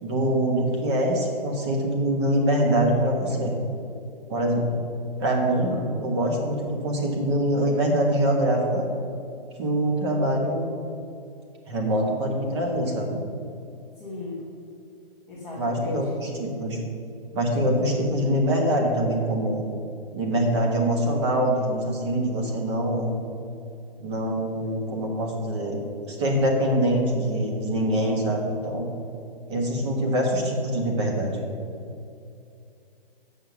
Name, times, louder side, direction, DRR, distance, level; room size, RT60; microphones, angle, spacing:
voice 1, 0.0-3.5 4.3-4.8 5.2-8.8 9.6-10.7 11.7-13.2 15.6-16.8 17.3-19.6 20.1-23.1 24.0-25.8 26.1-28.9 29.5-31.4, right 1 dB, 30° right, 1 dB, 1.4 m, -24 dB
voice 2, 14.0-14.4 15.3-16.1, left 2 dB, ahead, -12 dB, 0.5 m, -38 dB
7.9 x 5.8 x 6.9 m, 2.6 s
hypercardioid pair, 165°, 29 cm